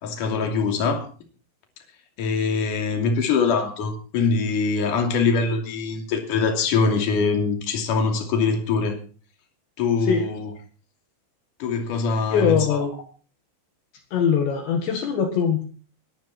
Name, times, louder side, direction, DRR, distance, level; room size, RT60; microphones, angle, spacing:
voice 1, 0.0-1.1 2.2-9.0 9.8-10.5 11.6-12.8, left 4 dB, 45° left, 4 dB, 3.9 m, -23 dB
voice 2, 10.0-10.3 12.0-13.0 14.1-15.7, left 7 dB, 65° left, 5 dB, 3.8 m, -22 dB
21.5 x 14.0 x 4.3 m, 0.38 s
omnidirectional pair, 5.6 m